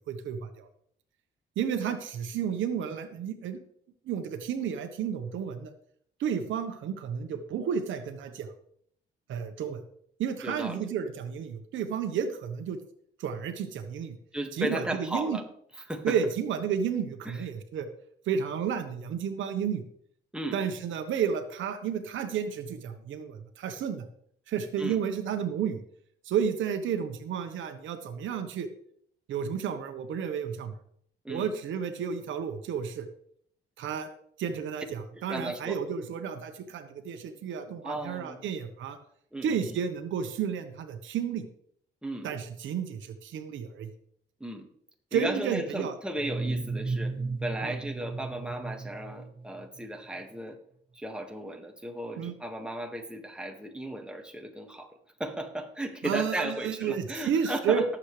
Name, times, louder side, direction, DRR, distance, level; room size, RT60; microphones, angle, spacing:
voice 1, 0.1-0.7 1.6-3.6 4.0-5.7 6.2-8.5 9.3-9.8 10.2-12.8 13.2-14.2 14.5-15.4 16.0-17.9 18.3-19.8 20.5-24.0 24.5-25.8 26.2-28.7 29.3-30.7 31.3-33.1 33.8-34.1 34.4-39.0 39.4-41.4 42.2-43.9 45.1-46.0 47.6-47.8 52.2-52.3 56.0-57.8, right 7 dB, 75° right, 8 dB, 1.2 m, -31 dB
voice 2, 10.4-10.8 14.3-15.4 15.9-16.2 17.2-17.4 20.3-20.6 24.8-25.0 31.2-31.5 35.1-35.8 37.8-38.4 39.3-39.8 42.0-42.3 44.4-44.7 45.1-47.1 47.4-50.6 50.9-54.9 55.2-57.8, right 1 dB, 5° right, 3 dB, 1.8 m, -35 dB
sound 1, 46.2-49.9, right 3 dB, 25° right, 0.6 m, -34 dB
18.5 x 7.4 x 3.3 m, 0.66 s
cardioid pair, 90°, 20 cm